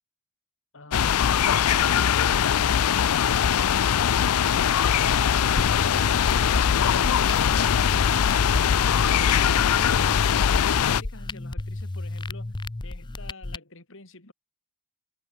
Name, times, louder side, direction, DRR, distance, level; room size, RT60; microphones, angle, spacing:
sound 1, 0.9-11.0, left 8 dB, 85° left, 0.5 m, -21 dB
voice 1, 4.3-14.3, left 2 dB, 60° left, 3.3 m, -48 dB
sound 2, 5.6-13.6, left 2 dB, 20° left, 0.5 m, -33 dB
head